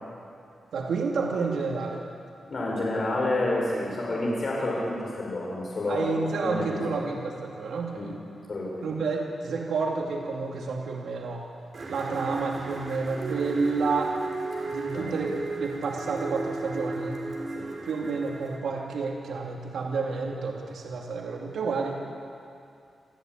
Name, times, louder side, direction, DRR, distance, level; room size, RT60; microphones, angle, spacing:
voice 1, 0.7-2.0 5.9-8.1 8.8-11.4 11.9-14.1 14.7-17.2 17.8-22.0, right 4 dB, 85° right, -1 dB, 2.8 m, -30 dB
voice 2, 2.5-7.0 8.0-8.1 8.5-8.8 14.5-15.1 17.5-17.7, left 1 dB, 45° left, -4 dB, 5.9 m, -29 dB
sound 1, 11.7-18.6, right 3 dB, 50° right, 5.2 m, -35 dB
27.0 x 14.5 x 9.6 m, 2.4 s
wide cardioid pair, 125°, 0 cm